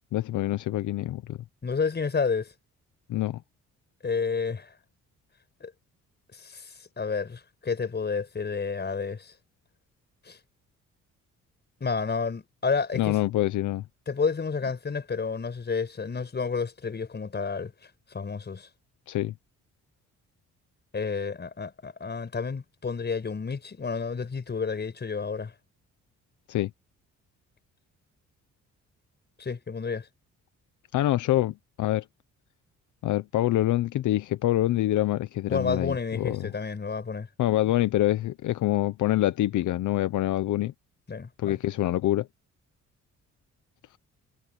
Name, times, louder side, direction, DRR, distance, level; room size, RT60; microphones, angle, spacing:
voice 1, 0.1-1.4 3.1-3.4 13.0-13.8 19.1-19.3 26.5-26.7 30.9-32.0 33.0-36.5 37.4-40.7 41.4-42.3, left 14 dB, 75° left, 1.0 m, -26 dB
voice 2, 1.6-2.5 4.0-4.7 5.6-5.7 6.3-9.3 10.2-10.4 11.8-13.2 14.1-17.7 18.1-18.7 20.9-25.5 29.4-30.1 35.5-37.3 41.1-41.6, left 5 dB, 35° left, 5.7 m, -30 dB
cardioid pair, 90°, 30 cm